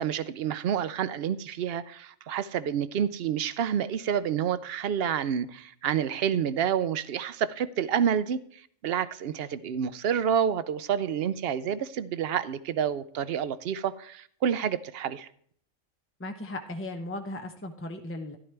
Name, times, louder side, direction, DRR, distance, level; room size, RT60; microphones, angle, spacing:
voice 1, 0.0-15.3, right 8 dB, 60° right, 0.6 m, -29 dB
voice 2, 16.2-18.4, left 1 dB, 15° left, 0.4 m, -36 dB
12.5 x 11.5 x 3.3 m
omnidirectional pair, 1.4 m